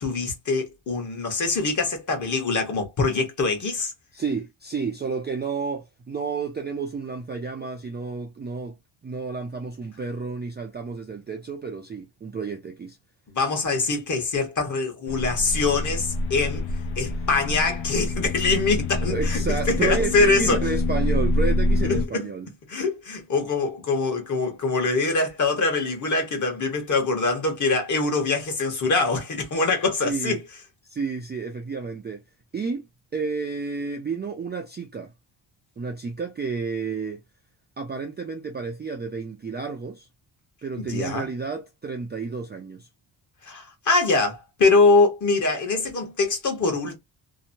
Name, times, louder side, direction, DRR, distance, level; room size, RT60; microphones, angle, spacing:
voice 1, 0.0-3.9 13.3-16.6 17.0-19.4 19.7-20.6 21.9-22.3 22.7-30.4 40.8-41.3 43.4-47.0, left 3 dB, 40° left, 1.1 m, -23 dB
voice 2, 4.1-8.7 9.0-13.0 19.1-22.5 30.0-30.4 30.9-32.2 32.5-32.9 33.1-35.1 35.8-37.2 37.8-40.1 40.6-42.9, right 4 dB, 25° right, 0.3 m, -31 dB
sound 1, 15.1-22.1, left 2 dB, 75° left, 0.8 m, -26 dB
2.8 x 2.1 x 2.6 m
wide cardioid pair, 150°, 47 cm